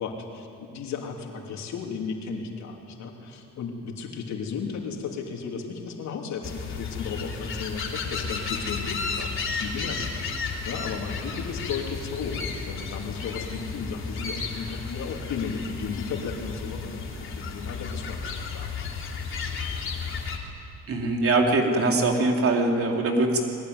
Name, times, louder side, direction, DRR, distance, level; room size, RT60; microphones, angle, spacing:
voice 1, 0.0-10.0 10.4-18.9, left 5 dB, 70° left, 1 dB, 3.4 m, -35 dB
sound 1, 6.4-20.4, left 4 dB, 45° left, 3.2 m, -33 dB
voice 2, 20.9-23.4, right 2 dB, 50° right, 2 dB, 3.5 m, -22 dB
22.0 x 18.5 x 9.7 m, 3.0 s
cardioid pair, 105°, 29 cm